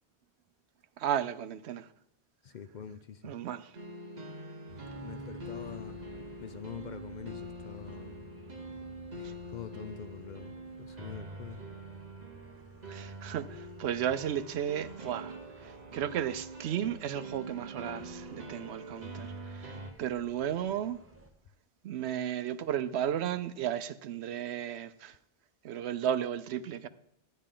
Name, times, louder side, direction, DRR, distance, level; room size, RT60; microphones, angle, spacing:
voice 1, 1.0-1.9 3.2-3.7 12.9-15.4 15.9-19.3 19.5-21.0 21.8-25.2 25.6-26.9, right 10 dB, 85° right, 0.9 m, -34 dB
voice 2, 2.4-3.4 5.0-6.0 6.4-8.2 9.2-11.6, left 8 dB, 55° left, 0.6 m, -45 dB
sound 1, 3.7-19.9, right 1 dB, 45° right, 1.0 m, -44 dB
sound 2, 4.7-21.3, equal, 15° right, 0.9 m, -56 dB
12.0 x 10.0 x 3.7 m
omnidirectional pair, 1.1 m